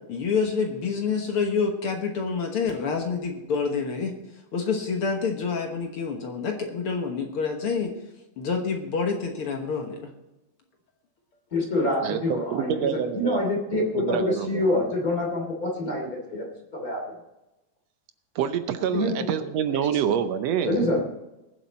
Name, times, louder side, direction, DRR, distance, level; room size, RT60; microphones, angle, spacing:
voice 1, 0.1-4.1 4.5-7.9 8.4-10.1, left 5 dB, 55° left, 3 dB, 1.8 m, -27 dB
voice 2, 11.5-16.4 16.7-17.0 18.9-19.1 20.6-21.0, left 1 dB, 30° left, 0 dB, 3.1 m, -26 dB
voice 3, 12.0-13.4 13.8-14.7 18.3-20.8, right 8 dB, 70° right, 9 dB, 1.7 m, -27 dB
21.0 x 7.7 x 4.2 m, 0.98 s
omnidirectional pair, 3.5 m